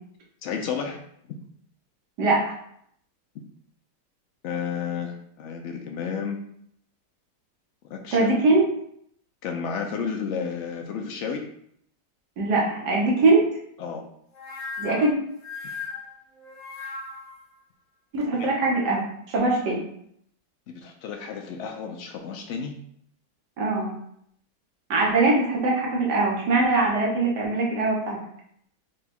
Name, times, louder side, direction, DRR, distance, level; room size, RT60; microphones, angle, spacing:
voice 1, 0.4-1.0 4.4-6.4 7.9-8.3 9.4-11.5 13.8-14.0 18.4-18.5 20.7-22.7, left 6 dB, 90° left, 3 dB, 0.6 m, -32 dB
voice 2, 2.2-2.5 8.1-8.7 12.4-13.4 14.8-15.1 18.1-19.8 23.6-23.9 24.9-28.2, right 3 dB, 75° right, -2 dB, 1.7 m, -22 dB
sound 1, 14.3-17.4, left 4 dB, 65° left, 1.5 m, -37 dB
4.8 x 2.3 x 4.2 m, 0.69 s
omnidirectional pair, 1.8 m